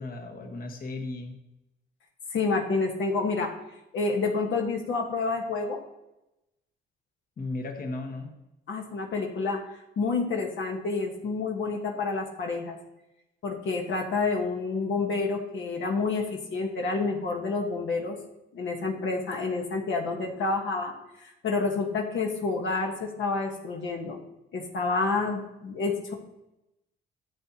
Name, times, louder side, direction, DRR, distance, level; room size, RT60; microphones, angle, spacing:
voice 1, 0.0-1.4 7.4-8.3, left 2 dB, 45° left, 3 dB, 1.3 m, -35 dB
voice 2, 2.3-3.5 3.9-5.8 8.7-9.6 10.0-12.8 13.4-16.2 16.5-18.2 18.5-20.9 21.2-24.2 24.5-26.1, left 3 dB, 70° left, 1 dB, 1.3 m, -28 dB
11.0 x 7.5 x 2.9 m, 0.91 s
cardioid pair, 90°, 20 cm